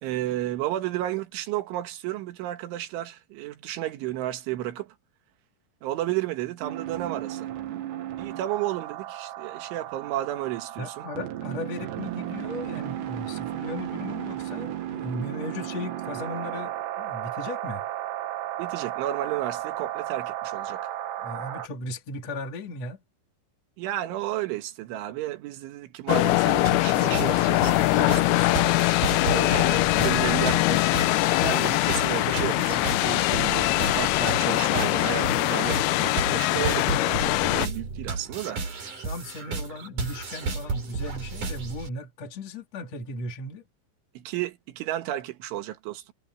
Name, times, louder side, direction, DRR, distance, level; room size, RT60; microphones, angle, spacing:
voice 1, 0.0-5.0 5.8-7.5 8.2-11.1 18.6-20.9 23.8-28.6 29.2-30.9 31.4-38.6 44.2-46.1, right 14 dB, 90° right, 4.0 m, -32 dB
sound 1, 6.6-21.7, right 13 dB, 70° right, 3.8 m, -34 dB
voice 2, 10.8-17.8 21.2-23.0 39.0-43.6, left 2 dB, 40° left, 3.9 m, -36 dB
sound 2, 26.1-37.7, left 19 dB, 90° left, 2.2 m, -22 dB
sound 3, 26.7-41.9, right 4 dB, 45° right, 6.3 m, -33 dB
omnidirectional pair, 5.3 m